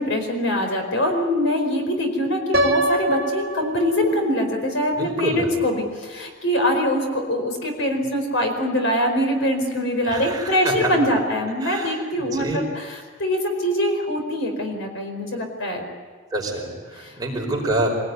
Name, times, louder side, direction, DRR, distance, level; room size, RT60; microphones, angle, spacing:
voice 1, 0.0-12.9 13.2-15.8 17.0-17.1, equal, 65° left, 4 dB, 4.8 m, -23 dB
Piano, 2.5-4.5, equal, 50° right, 2.6 m, -24 dB
voice 2, 4.9-5.5 10.0-10.9 11.6-12.6 16.3-17.9, right 2 dB, 20° right, -1 dB, 5.1 m, -27 dB
25.0 x 18.5 x 9.7 m, 1.5 s
head